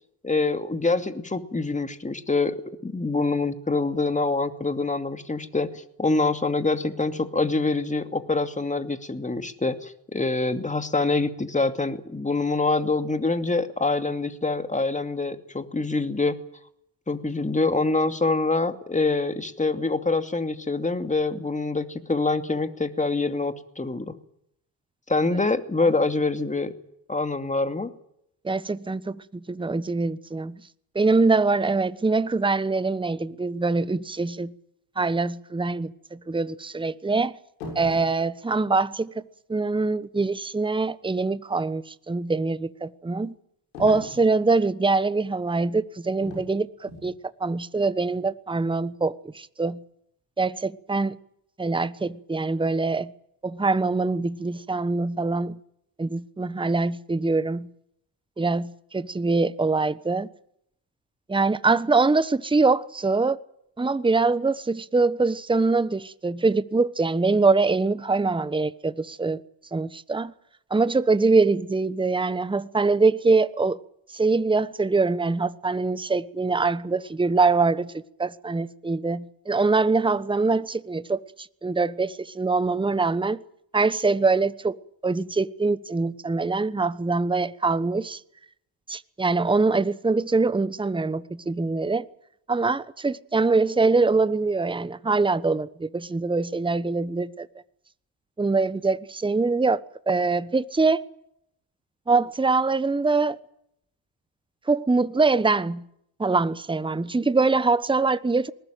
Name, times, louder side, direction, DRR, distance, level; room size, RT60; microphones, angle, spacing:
voice 1, 0.2-2.6 2.8-16.4 17.1-24.2 25.1-26.7 27.1-27.9, left 3 dB, 15° left, 2.5 m, -25 dB
voice 2, 28.4-29.2 29.5-30.6 30.9-34.5 35.0-37.3 37.7-39.1 39.5-43.3 43.8-47.1 47.4-49.8 50.4-51.2 51.6-53.1 53.4-55.6 56.0-57.7 58.4-60.3 61.3-63.4 63.8-69.4 69.7-70.3 70.7-73.8 74.1-77.9 78.2-83.4 83.7-84.8 85.0-88.2 88.9-92.0 92.5-97.5 98.4-101.0 102.1-103.4 104.7-105.8 106.2-108.5, right 3 dB, 10° right, 1.1 m, -23 dB
sound 1, 37.6-38.2 43.7-44.3 46.2-46.5 46.9-47.2, left 2 dB, 85° left, 6.7 m, -38 dB
20.5 x 20.0 x 9.2 m
hypercardioid pair, 55°, 50 cm